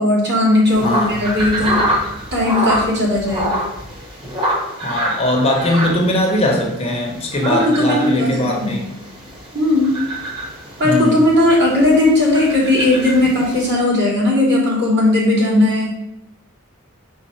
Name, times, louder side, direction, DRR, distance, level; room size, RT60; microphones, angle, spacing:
voice 1, 0.0-1.8 2.3-3.6 7.4-8.9 9.5-10.0 10.8-16.0, left 1 dB, 50° right, -5 dB, 2.3 m, -17 dB
sound 1, 0.6-13.7, equal, 20° right, 1.4 m, -26 dB
voice 2, 0.8-1.1 4.2-4.3 4.8-8.9 10.8-11.2, left 1 dB, 30° left, 1 dB, 0.9 m, -19 dB
5.5 x 3.5 x 5.6 m, 0.83 s
head